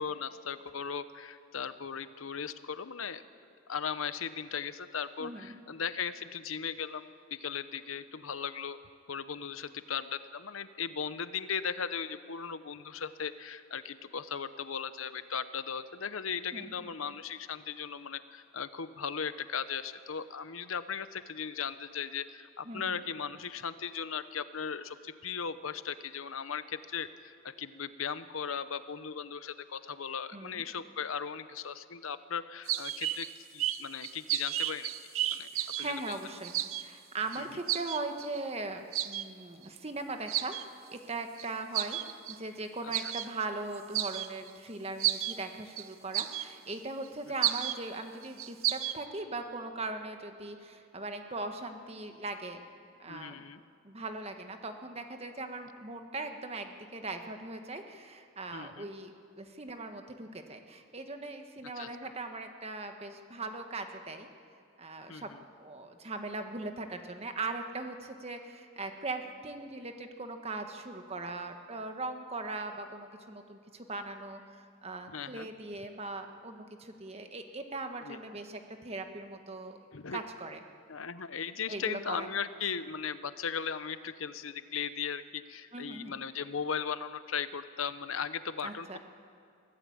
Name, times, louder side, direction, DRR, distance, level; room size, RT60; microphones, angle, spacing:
voice 1, 0.0-3.2 3.7-8.8 9.1-34.9 35.3-35.5 35.8-36.2 37.4-37.6 42.8-43.1 53.1-53.6 58.5-58.9 61.8-61.9 65.1-65.4 75.1-75.5 78.0-78.2 79.9-80.2 80.9-89.0, left 7 dB, 80° left, 13 dB, 0.9 m, -37 dB
voice 2, 5.2-5.6 16.5-16.8 22.6-23.0 30.3-30.6 35.5-40.6 40.9-42.0 42.3-52.6 53.0-53.4 53.8-64.3 64.8-65.3 65.6-79.8 80.1-80.6 81.7-82.3 85.7-86.2 88.6-89.0, right 3 dB, 30° right, 6 dB, 1.4 m, -40 dB
sound 1, 32.7-33.3 33.6-36.1 36.4-36.8 37.3-37.4 37.7-38.4 38.9-39.2 39.8-39.9 40.3-40.6 41.4-41.5 41.7-42.3 42.9-43.3 43.7-44.5 45.0-45.4 45.8-45.9 46.1-46.8 47.0-47.1 47.4-47.8 48.2-49.0, right 13 dB, 85° right, 0.7 m, -32 dB
23.5 x 15.0 x 8.7 m, 2.4 s
head